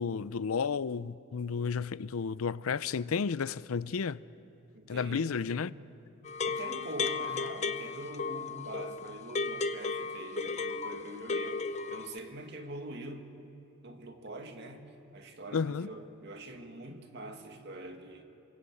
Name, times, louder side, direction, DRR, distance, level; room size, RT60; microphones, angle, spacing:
voice 1, 0.0-4.2 4.9-5.7 15.5-15.9, left 5 dB, 85° left, 0.5 m, -32 dB
voice 2, 4.7-5.8 6.5-13.3 13.8-18.2, right 1 dB, 50° right, 2.0 m, -44 dB
sound 1, 6.2-12.2, left 4 dB, 30° left, 0.7 m, -35 dB
28.0 x 21.0 x 8.5 m
head